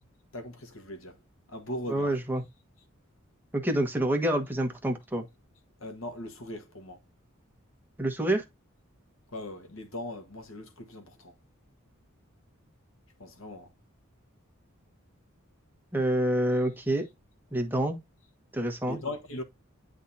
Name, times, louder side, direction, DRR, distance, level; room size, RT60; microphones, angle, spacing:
voice 1, 0.3-1.1 1.5-2.2 5.8-7.0 9.3-11.3 13.2-13.7 18.9-19.4, left 1 dB, 75° left, 1.4 m, -39 dB
voice 2, 1.9-2.4 3.5-5.2 8.0-8.4 15.9-17.0 17.5-18.0 18.5-19.0, right 1 dB, 10° right, 1.4 m, -27 dB
10.0 x 3.7 x 2.7 m
head